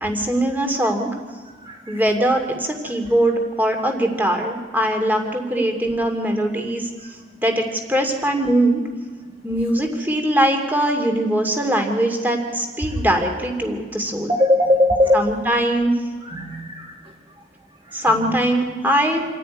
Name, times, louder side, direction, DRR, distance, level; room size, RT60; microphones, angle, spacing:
voice 1, 0.0-1.1 1.9-6.9 7.4-8.8 9.4-14.3 15.1-15.9 17.9-19.2, right 1 dB, 10° right, 3 dB, 2.6 m, -21 dB
voice 2, 1.7-2.0 14.3-15.2 16.3-16.9 18.1-18.4, left 1 dB, 25° right, 0 dB, 1.3 m, -19 dB
28.0 x 9.9 x 9.7 m, 1.5 s
head